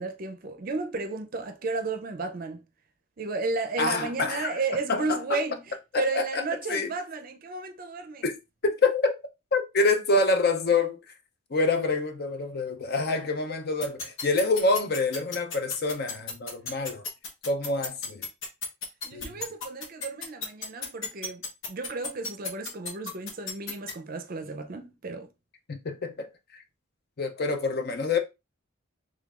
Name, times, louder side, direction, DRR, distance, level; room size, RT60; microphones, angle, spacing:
voice 1, 0.0-2.6 3.2-8.2 19.0-25.3, right 3 dB, 45° right, 0.5 m, -33 dB
voice 2, 3.8-4.6 4.9-5.4 5.9-6.4 6.7-6.9 8.2-8.4 8.6-9.2 9.5-11.0 11.5-17.0 17.5-18.2 19.1-19.4 25.7-26.3 27.2-28.2, left 3 dB, 50° left, 0.6 m, -26 dB
sound 1, 13.8-23.9, left 5 dB, 70° left, 0.9 m, -33 dB
3.7 x 3.2 x 2.4 m
head